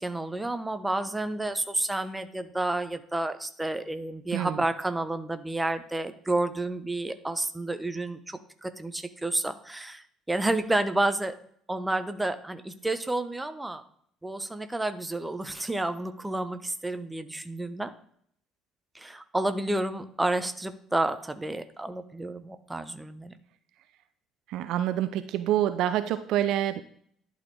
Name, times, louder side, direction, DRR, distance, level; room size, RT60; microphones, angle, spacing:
voice 1, 0.0-11.3 11.7-13.8 14.2-17.9 18.9-23.3, right 2 dB, 10° right, 10 dB, 0.8 m, -30 dB
voice 2, 4.3-4.6 24.5-26.8, right 12 dB, 60° right, 12 dB, 0.4 m, -27 dB
11.0 x 4.0 x 3.4 m, 0.65 s
figure-of-eight pair, 55°, 0 cm